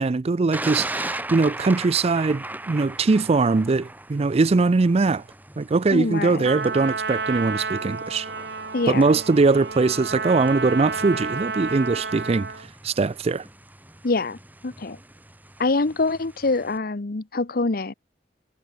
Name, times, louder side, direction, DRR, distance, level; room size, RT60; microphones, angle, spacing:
voice 1, 0.0-5.2 5.6-8.3 8.9-12.5 12.8-13.4, right 3 dB, 35° right, 0.4 m, -21 dB
Thunder, 0.5-16.8, right 1 dB, 10° right, 6.3 m, -39 dB
voice 2, 5.9-6.4 8.7-9.1 14.0-14.4 14.6-15.0 15.6-17.9, left 3 dB, 60° left, 0.9 m, -25 dB
Trumpet, 6.4-12.7, right 4 dB, 70° right, 3.9 m, -31 dB
head